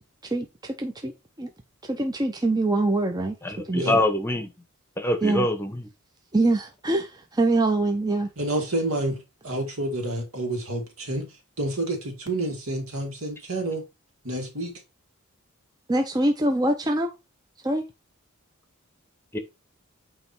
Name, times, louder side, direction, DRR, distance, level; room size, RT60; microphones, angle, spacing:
voice 1, 0.2-1.1 1.4-1.5 1.9-3.4 3.7-3.9 5.2-5.5 6.3-8.3 15.9-17.1 17.6-17.8, right 2 dB, 20° right, 0.6 m, -24 dB
voice 2, 3.4-4.5 5.0-5.9 19.3-19.4, left 1 dB, 10° left, 0.9 m, -25 dB
voice 3, 8.4-9.2 9.4-11.3 11.6-13.8 14.2-14.7, right 1 dB, 70° right, 2.2 m, -29 dB
8.8 x 3.0 x 4.4 m
head